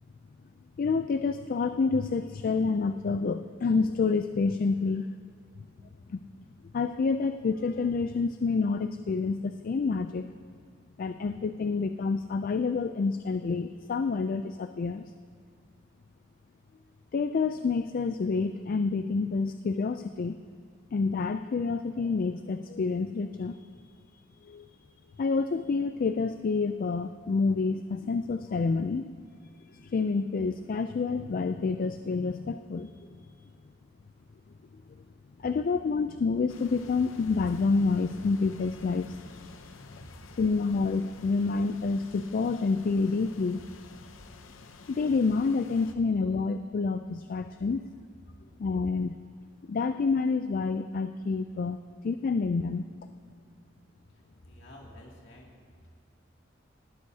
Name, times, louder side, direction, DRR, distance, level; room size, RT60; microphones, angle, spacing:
voice 1, 0.8-5.1 6.1-6.2 6.7-10.3 11.0-15.0 17.1-20.4 20.9-23.7 24.4-24.7 25.2-29.1 29.8-32.9 35.4-39.2 40.4-43.6 44.9-47.8 48.6-49.2 49.7-51.8 52.0-52.8, left 4 dB, 45° left, 9 dB, 0.3 m, -28 dB
sound 1, 36.5-45.9, left 3 dB, 90° left, 0.7 m, -50 dB
voice 2, 54.1-55.5, left 1 dB, 65° left, -2 dB, 2.5 m, -50 dB
18.5 x 12.5 x 2.8 m, 2.2 s
head